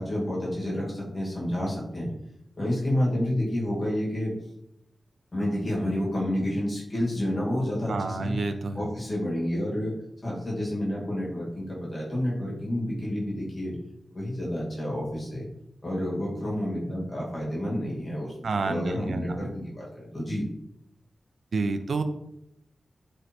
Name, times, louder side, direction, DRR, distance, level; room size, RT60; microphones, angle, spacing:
voice 1, 0.0-2.1 2.6-4.3 5.3-8.4 8.7-9.9 10.2-13.8 14.1-15.5 15.8-18.3 18.6-20.4, left 1 dB, 25° left, -5 dB, 1.3 m, -29 dB
voice 2, 7.9-8.9 18.4-19.5 21.5-22.0, right 3 dB, 60° right, 8 dB, 0.3 m, -29 dB
3.2 x 2.8 x 4.1 m, 0.82 s
wide cardioid pair, 175°, 0 cm